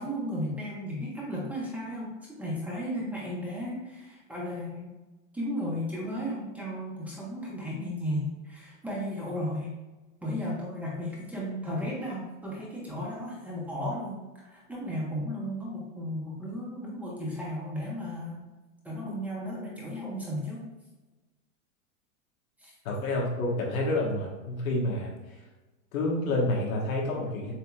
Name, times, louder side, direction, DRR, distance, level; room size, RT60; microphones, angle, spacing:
voice 1, 0.0-4.9 5.3-9.7 10.2-18.5 18.8-20.6 22.6-22.7, equal, 5° right, -6 dB, 1.1 m, -34 dB
voice 2, 22.8-25.1 25.9-27.5, left 2 dB, 85° left, -1 dB, 1.4 m, -28 dB
7.4 x 2.8 x 2.4 m, 1.2 s
supercardioid pair, 135°, 40 cm